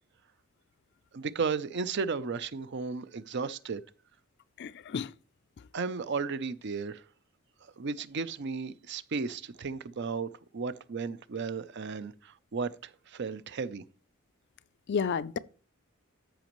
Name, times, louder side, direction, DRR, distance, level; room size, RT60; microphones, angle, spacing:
voice 1, 1.1-3.8 5.7-7.0 7.6-13.8, right 5 dB, 55° right, 0.5 m, -34 dB
voice 2, 4.6-5.1 14.9-15.4, left 6 dB, 55° left, 0.4 m, -31 dB
14.0 x 5.0 x 3.0 m
head